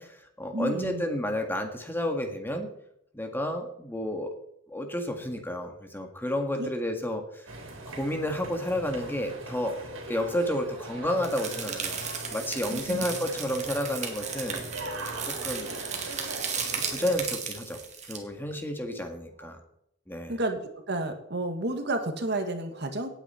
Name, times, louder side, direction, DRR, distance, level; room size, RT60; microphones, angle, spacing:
voice 1, 0.0-2.7 3.1-4.3 4.7-7.5 7.9-9.8 10.1-12.0 12.3-14.6 15.3-15.7 16.5-17.8 18.1-19.6 20.1-20.3, left 1 dB, 10° left, 4 dB, 1.7 m, -31 dB
voice 2, 0.5-1.1 6.6-6.7 12.7-13.0 19.4-19.5 20.3-20.6 20.9-23.1, right 2 dB, 55° right, 6 dB, 1.8 m, -31 dB
sound 1, 7.5-17.2, right 2 dB, 75° right, 3.4 m, -40 dB
sound 2, 11.2-18.2, right 6 dB, 35° right, 2.3 m, -35 dB
17.5 x 9.0 x 4.4 m, 0.77 s
head